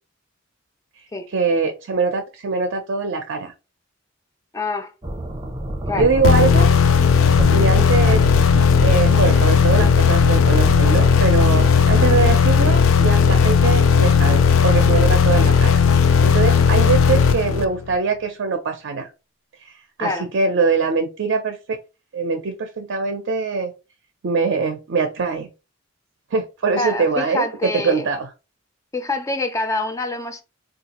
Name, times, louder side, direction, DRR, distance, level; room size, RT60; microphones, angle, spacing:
voice 1, 1.3-3.5 6.0-6.7 7.5-8.2 8.8-15.8 16.2-19.1 19.6-19.7 20.0-21.6 22.1-23.7 24.2-25.5 26.3-27.4 27.8-28.3, right 4 dB, 65° right, 0.5 m, -22 dB
voice 2, 4.5-4.9 5.9-6.1 15.1-15.5 20.0-20.3 26.8-28.1 28.9-30.4, left 2 dB, 15° left, 0.4 m, -26 dB
sound 1, 5.0-12.3, right 1 dB, 25° right, 0.6 m, -29 dB
sound 2, 6.2-18.0, left 6 dB, 90° left, 0.4 m, -15 dB
3.8 x 2.3 x 2.8 m
head